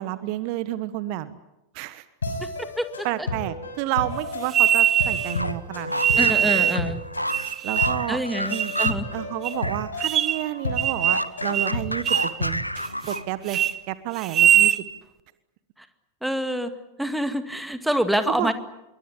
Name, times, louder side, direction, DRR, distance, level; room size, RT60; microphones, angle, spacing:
voice 1, 0.0-1.3 1.7-2.0 3.0-6.7 7.6-8.2 8.5-8.7 9.1-12.6 13.1-13.6 13.9-14.7 18.3-18.5, right 15 dB, 45° right, 15 dB, 1.3 m, -30 dB
sound 1, 2.2-12.9, left 2 dB, 70° left, 5.9 m, -33 dB
sound 2, 4.5-5.3 6.0-6.8 7.3-8.0 8.5-9.0 9.4-9.5 10.0-10.5 10.8-11.3 11.5-11.7 12.0-12.4 12.8-13.2 13.5-13.7 14.2-14.8, right 10 dB, 30° right, 1.3 m, -21 dB
sound 3, 5.2-9.9 10.2-13.5, equal, 90° left, 1.0 m, -31 dB
voice 2, 6.2-7.0 8.1-9.1 16.2-16.7 17.0-18.5, equal, ahead, 9 dB, 2.1 m, -26 dB
26.0 x 23.0 x 8.4 m, 0.93 s
figure-of-eight pair, 90°, 0 cm